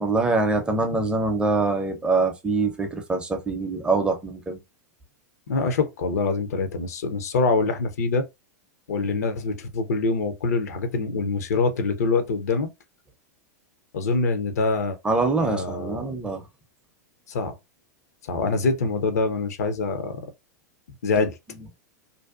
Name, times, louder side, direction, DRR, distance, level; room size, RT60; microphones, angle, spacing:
voice 1, 0.0-4.6 15.0-16.4 21.2-21.3, right 3 dB, 10° right, 0.5 m, -24 dB
voice 2, 5.5-8.3 8.9-12.7 13.9-15.0 15.4-16.2 17.3-17.5 18.2-20.2 21.0-21.4, left 3 dB, 65° left, 0.6 m, -25 dB
2.6 x 2.2 x 2.3 m
figure-of-eight pair, 95°, 9 cm